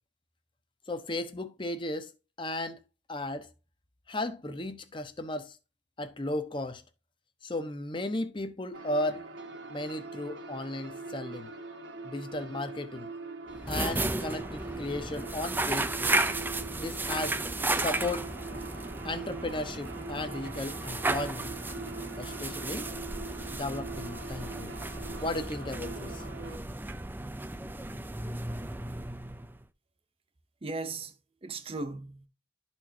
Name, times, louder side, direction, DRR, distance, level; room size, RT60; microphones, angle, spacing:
voice 1, 0.9-2.1 2.4-2.8 3.1-3.5 4.1-5.6 6.0-6.8 7.4-9.2 9.7-11.5 12.0-13.1 13.7-16.1 16.8-17.4 17.8-18.3 19.0-21.5 22.2-22.9 23.5-24.7 25.2-26.2, left 2 dB, 25° left, 0.8 m, -35 dB
sound 1, 8.7-26.6, right 3 dB, 80° right, 1.5 m, -43 dB
sound 2, 13.5-29.6, right 2 dB, 10° right, 0.4 m, -34 dB
voice 2, 30.6-32.3, right 3 dB, 30° right, 0.8 m, -37 dB
12.0 x 4.4 x 2.8 m
head